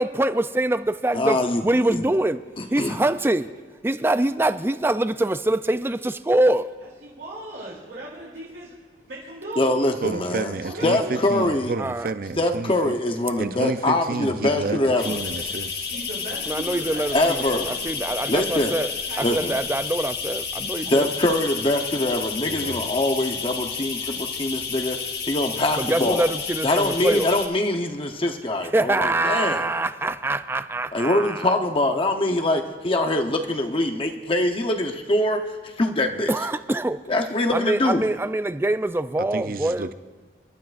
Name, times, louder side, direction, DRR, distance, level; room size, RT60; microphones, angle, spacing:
voice 1, 0.0-2.4 2.7-3.5 3.8-6.7 11.8-12.1 16.5-18.9 19.2-21.1 25.8-27.3 28.7-31.5 36.3-37.0 37.5-39.9, right 1 dB, 15° right, 12 dB, 0.4 m, -24 dB
voice 2, 1.1-2.1 2.6-3.0 9.6-10.5 10.8-11.7 12.4-15.2 17.1-17.7 18.3-18.8 19.2-19.6 20.9-25.0 25.3-26.3 26.6-29.7 30.9-35.4 35.8-36.3 37.1-38.0, left 1 dB, 30° left, 4 dB, 0.8 m, -23 dB
voice 3, 6.8-8.7 9.0-9.9 10.6-11.3 15.3-15.4 15.9-19.6 20.8-21.2, right 1 dB, 80° right, -6 dB, 3.0 m, -38 dB
voice 4, 10.0-13.0 13.4-15.9 22.5-22.9 39.2-39.9, right 3 dB, 55° right, 10 dB, 0.6 m, -30 dB
sound 1, 15.0-27.5, left 6 dB, 65° left, 1.6 m, -31 dB
28.0 x 12.0 x 2.5 m, 1.5 s
head